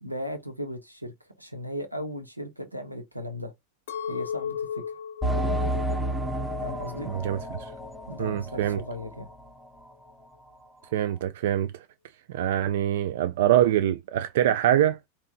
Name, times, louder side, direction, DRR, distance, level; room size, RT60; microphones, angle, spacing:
voice 1, 0.0-3.5 4.1-4.8 6.6-7.1 8.1-9.3, equal, 90° right, 0.9 m, -36 dB
Chink clink, 3.9-8.2 8.6-9.2, left 7 dB, 55° left, 0.6 m, -37 dB
sound 1, 5.2-9.5 9.8-9.9 10.5-10.6, right 1 dB, ahead, 0.6 m, -31 dB
voice 2, 7.1-7.7 8.2-8.8 10.9-11.7 12.3-15.0, right 11 dB, 55° right, 0.3 m, -24 dB
4.3 x 2.9 x 2.4 m
figure-of-eight pair, 90°, 0 cm